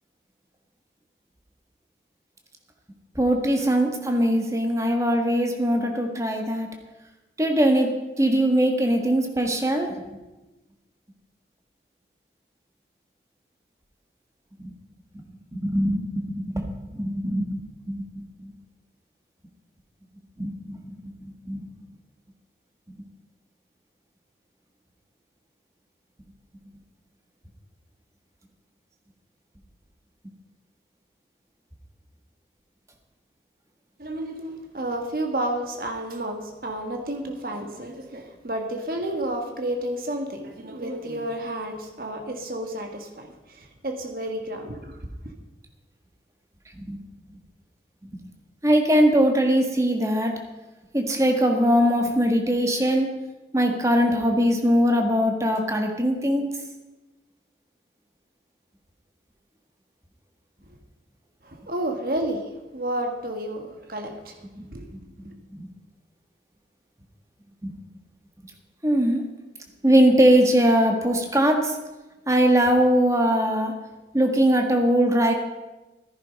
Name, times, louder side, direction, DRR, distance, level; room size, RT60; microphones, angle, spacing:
voice 1, 3.1-6.7 7.4-7.9 8.2-9.9 14.6-14.7 15.1-15.2 15.5-18.5 20.4-21.6 46.8-47.0 48.6-50.3 50.9-53.1 53.5-56.5 64.6-64.7 65.2-65.7 67.6-67.7 68.8-69.2 69.8-71.8 72.3-73.7 74.1-75.3, equal, 15° right, 3 dB, 1.5 m, -21 dB
voice 2, 34.0-45.0 45.2-45.3 60.7-60.8 61.4-64.4 64.7-64.9 65.2-65.3, right 1 dB, 55° right, 3 dB, 1.5 m, -31 dB
14.0 x 10.5 x 5.3 m, 1.1 s
head